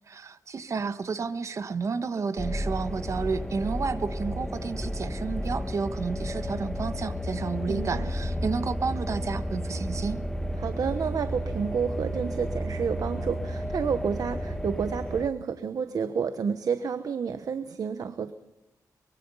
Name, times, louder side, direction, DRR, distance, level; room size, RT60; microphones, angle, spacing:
voice 1, 0.1-10.2, right 5 dB, 50° right, 11 dB, 1.5 m, -31 dB
sound 1, 2.4-15.3, equal, 5° left, 1.4 m, -32 dB
voice 2, 7.7-8.1 10.6-18.3, right 6 dB, 65° right, 10 dB, 1.2 m, -30 dB
24.0 x 23.0 x 5.6 m, 0.92 s
wide cardioid pair, 115°, 7 cm